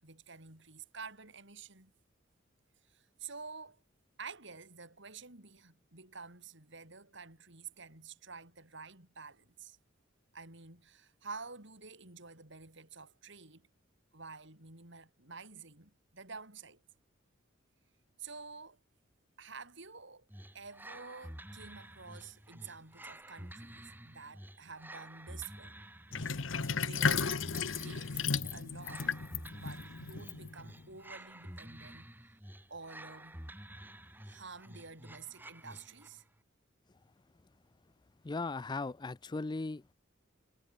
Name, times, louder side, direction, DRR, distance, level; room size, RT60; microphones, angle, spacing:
voice 1, 0.0-1.9 2.9-3.8 4.2-9.8 10.3-13.7 14.1-16.8 18.2-18.8 19.4-20.3 20.5-25.9 26.7-29.1 29.6-32.1 32.7-33.4 34.2-36.2, right 4 dB, 65° right, 6.8 m, -50 dB
sound 1, 20.3-36.2, right 1 dB, 10° right, 4.9 m, -50 dB
Sink (filling or washing), 26.1-30.9, left 5 dB, 70° left, 1.1 m, -34 dB
voice 2, 38.2-39.9, left 3 dB, 20° left, 0.4 m, -37 dB
head